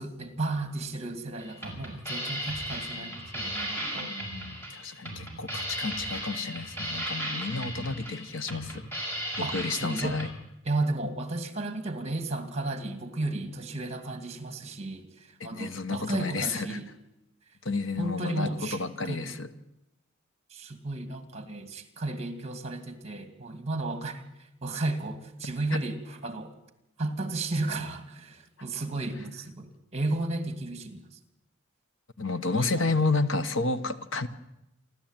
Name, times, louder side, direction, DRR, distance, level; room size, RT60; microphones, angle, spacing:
voice 1, 0.0-4.1 9.4-10.2 10.6-16.9 18.0-18.8 19.0-19.4 20.5-24.2 24.6-26.6 27.0-31.0 32.5-33.1, right 2 dB, 30° right, 2.3 m, -33 dB
sound 1, 1.4-10.3, equal, 10° left, 6.2 m, -36 dB
voice 2, 4.7-8.9 9.4-10.3 15.4-16.8 17.6-19.5 32.2-34.3, left 3 dB, 65° left, 1.2 m, -30 dB
28.0 x 12.0 x 9.0 m
head